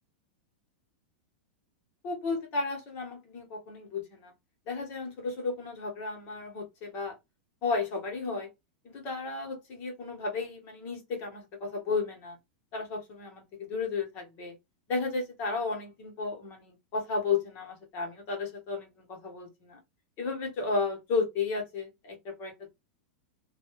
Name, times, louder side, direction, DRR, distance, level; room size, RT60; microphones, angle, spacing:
voice 1, 2.0-4.3 4.7-7.2 7.6-8.5 8.8-12.4 12.7-14.5 14.9-19.8 20.2-22.7, left 4 dB, 40° left, 1.3 m, -33 dB
2.7 x 2.4 x 3.0 m
supercardioid pair, 140°, 5 cm